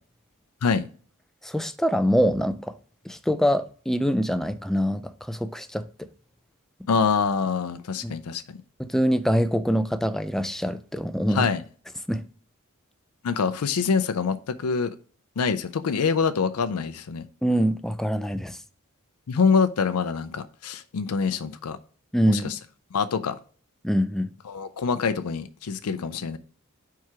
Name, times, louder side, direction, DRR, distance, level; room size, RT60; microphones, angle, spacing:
voice 1, 1.4-2.7 3.1-5.8 8.0-8.1 8.8-11.5 12.1-12.2 17.4-18.6 22.1-22.5 23.8-24.3, equal, ahead, 0.4 m, -24 dB
voice 2, 6.9-8.4 11.3-11.6 13.2-14.9 15.4-17.3 19.3-21.8 22.3-22.6 22.9-23.4 24.5-26.4, left 5 dB, 80° left, 0.5 m, -25 dB
4.6 x 4.5 x 4.7 m
head